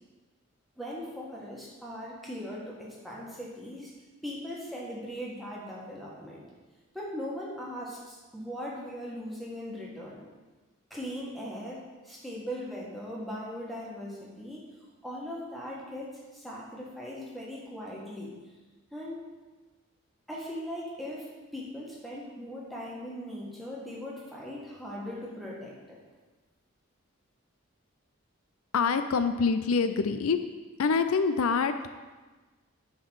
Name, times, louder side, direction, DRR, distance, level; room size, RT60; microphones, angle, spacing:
voice 1, 0.8-3.9 4.2-6.4 6.9-10.2 10.9-14.6 15.0-18.3 18.9-19.2 20.3-21.3 21.5-26.0, equal, ahead, -5 dB, 1.5 m, -39 dB
voice 2, 28.7-30.4 30.8-31.9, left 5 dB, 80° left, 9 dB, 0.5 m, -25 dB
9.4 x 3.9 x 6.3 m, 1.3 s
head